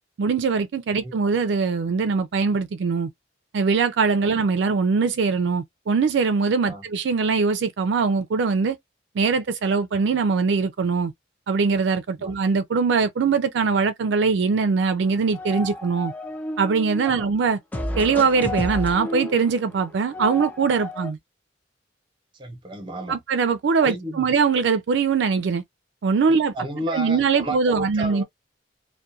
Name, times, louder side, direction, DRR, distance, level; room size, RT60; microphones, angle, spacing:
voice 1, 0.2-3.1 3.5-8.8 9.2-11.1 11.5-16.1 16.6-17.6 18.0-21.2 23.1-25.6 26.0-26.5 26.9-28.2, right 5 dB, 70° right, 0.4 m, -22 dB
sound 1, 15.0-17.2 17.7-21.1, left 1 dB, 10° left, 0.5 m, -32 dB
voice 2, 22.3-23.2 23.8-24.3 26.3-28.2, right 1 dB, 25° right, 0.7 m, -33 dB
2.3 x 2.1 x 2.6 m
head